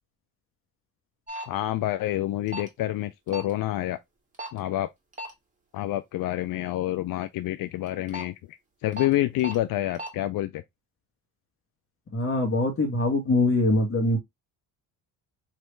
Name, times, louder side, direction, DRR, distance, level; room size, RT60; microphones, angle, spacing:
sound 1, 1.3-1.5 2.5-2.7 3.3-3.5 4.4-4.6 5.1-5.3 7.9-8.2 9.0-9.1 9.4-9.6 10.0-10.1, equal, 20° right, 1.5 m, -34 dB
voice 1, 1.5-4.0 4.5-4.9 5.7-8.3 8.8-10.6, left 14 dB, 60° left, 0.5 m, -28 dB
voice 2, 12.1-14.2, left 2 dB, 35° left, 1.3 m, -23 dB
3.2 x 2.8 x 3.1 m
supercardioid pair, 75°, 39 cm